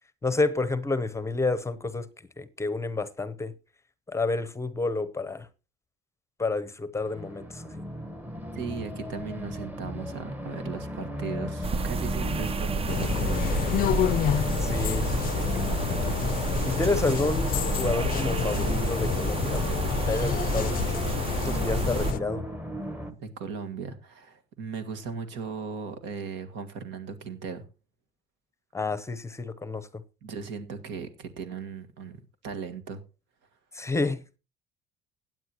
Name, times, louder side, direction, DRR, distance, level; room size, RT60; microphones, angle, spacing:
voice 1, 0.2-2.1 2.4-3.5 4.1-5.5 6.4-7.6 14.6-15.2 16.7-19.8 20.1-22.4 28.7-29.9 33.7-34.4, left 3 dB, 15° left, 0.8 m, -29 dB
sound 1, 6.9-23.1, equal, 10° right, 1.2 m, -36 dB
voice 2, 8.5-13.6 15.2-16.4 23.2-27.7 30.2-33.0, right 5 dB, 70° right, 1.7 m, -37 dB
sound 2, 11.6-22.1, right 4 dB, 30° right, 0.6 m, -30 dB
sound 3, 12.9-22.2, left 12 dB, 45° left, 0.5 m, -29 dB
16.0 x 9.2 x 2.9 m
supercardioid pair, 100°, 20 cm